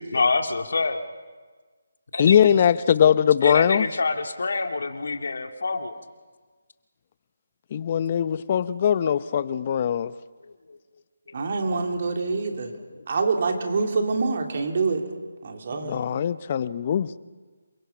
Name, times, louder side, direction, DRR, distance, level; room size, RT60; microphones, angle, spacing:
voice 1, 0.1-1.1 2.1-2.5 3.4-6.0 11.9-12.0 12.4-13.0, left 3 dB, 65° left, 5 dB, 2.1 m, -27 dB
voice 2, 2.2-3.8 7.7-10.1 15.8-17.2, left 9 dB, 35° left, 16 dB, 0.7 m, -21 dB
voice 3, 11.3-12.7 13.1-15.0 15.4-16.0, right 4 dB, 50° right, 3 dB, 3.2 m, -26 dB
28.0 x 23.5 x 5.8 m, 1.4 s
figure-of-eight pair, 155°, 0 cm